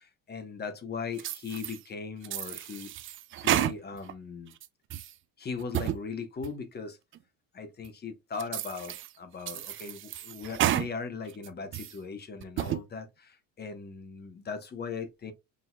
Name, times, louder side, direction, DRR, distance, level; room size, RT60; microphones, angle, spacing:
voice 1, 0.0-2.9 3.3-4.5 5.4-7.0 7.5-15.3, left 5 dB, 30° left, 1.0 m, -39 dB
sound 1, 1.2-1.8 2.2-4.1 4.5-5.1 5.6-6.0 6.4-6.5 7.1-7.2 7.8-7.9 8.4-9.1 9.5-10.9 11.3-12.0 12.4-12.8, right 12 dB, 40° right, 0.4 m, -31 dB
6.2 x 2.8 x 2.2 m
supercardioid pair, 90°, 32 cm